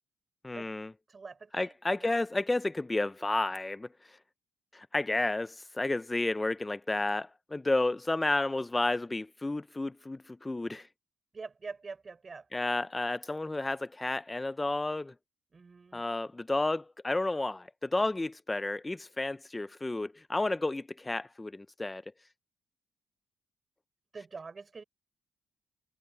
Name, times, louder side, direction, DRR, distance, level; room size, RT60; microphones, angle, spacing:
voice 1, 0.4-0.9 1.5-4.2 4.7-10.9 12.5-15.1 15.9-22.0, left 2 dB, 15° left, 0.4 m, -31 dB
voice 2, 1.1-2.2 11.3-12.5 15.5-16.0 24.1-24.8, right 4 dB, 35° right, 4.9 m, -45 dB
cardioid pair, 90°, 0 cm